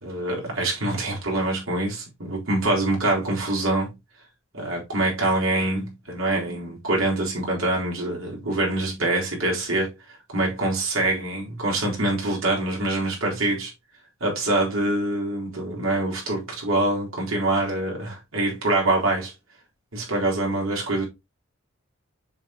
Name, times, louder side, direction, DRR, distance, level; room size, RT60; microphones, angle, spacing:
voice 1, 0.0-3.9 4.5-9.9 10.3-13.7 14.2-19.3 19.9-21.1, right 2 dB, 85° right, 3.9 m, -25 dB
7.6 x 5.8 x 2.9 m
head